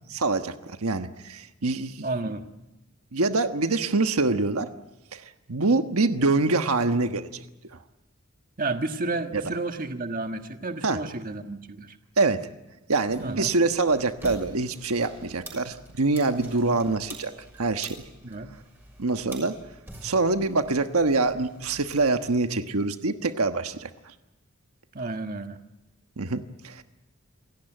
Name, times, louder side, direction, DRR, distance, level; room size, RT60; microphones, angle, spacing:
voice 1, 0.1-2.1 3.1-4.7 5.1-5.2 5.5-7.4 9.3-9.4 10.8-11.0 12.2-12.5 12.9-17.3 17.6-18.0 19.0-19.5 20.0-23.9 26.2-26.8, right 3 dB, 85° right, 8 dB, 1.3 m, -25 dB
voice 2, 2.0-2.5 8.6-12.0 13.2-13.5 16.5-16.8 18.2-18.5 24.9-25.6, right 2 dB, 40° right, 6 dB, 1.5 m, -31 dB
sound 1, 13.1-22.3, right 1 dB, 10° right, 6.4 m, -47 dB
27.5 x 17.5 x 9.0 m, 1.0 s
head